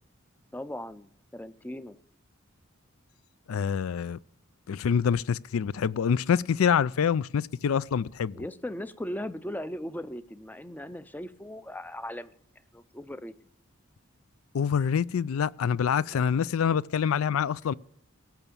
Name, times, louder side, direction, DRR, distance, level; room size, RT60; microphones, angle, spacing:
voice 1, 0.5-2.0 8.3-12.3 12.7-13.4 16.1-16.2, left 1 dB, 10° left, 0.4 m, -38 dB
voice 2, 3.5-4.2 4.7-8.4 14.5-17.7, left 7 dB, 85° left, 0.4 m, -26 dB
17.5 x 6.0 x 6.9 m
head